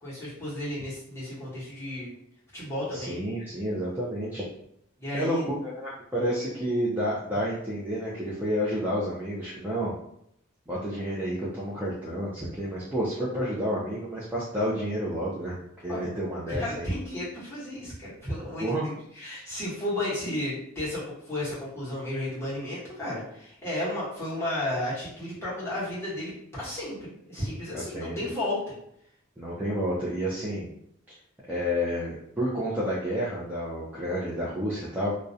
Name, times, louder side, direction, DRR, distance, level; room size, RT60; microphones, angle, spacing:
voice 1, 0.0-2.1 2.5-3.2 5.0-5.4 15.9-16.1 16.5-28.7, left 1 dB, 10° left, -9 dB, 0.9 m, -33 dB
voice 2, 2.9-4.4 5.1-9.9 10.7-15.6 15.8-16.9 18.6-18.9 27.7-28.1 29.4-30.7 31.4-35.1, equal, 10° right, -8 dB, 0.3 m, -30 dB
2.4 x 2.0 x 2.6 m, 0.74 s
head